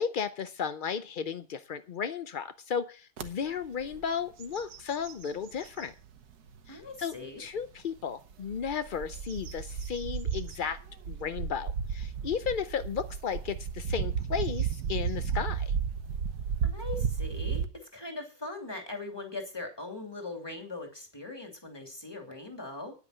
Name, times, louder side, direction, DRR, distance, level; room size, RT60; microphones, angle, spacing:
voice 1, 0.0-5.9 6.7-10.8 11.1-15.7, left 7 dB, 55° left, 10 dB, 0.5 m, -34 dB
sound 1, 3.2-3.3 3.8-4.1 4.4-5.9 6.5-6.6 8.3-17.7, right 7 dB, 85° right, 1.6 m, -33 dB
voice 2, 6.7-7.4 16.7-17.6 17.9-22.9, left 3 dB, 15° left, 3 dB, 2.7 m, -40 dB
10.0 x 9.4 x 6.5 m, 0.37 s
omnidirectional pair, 1.6 m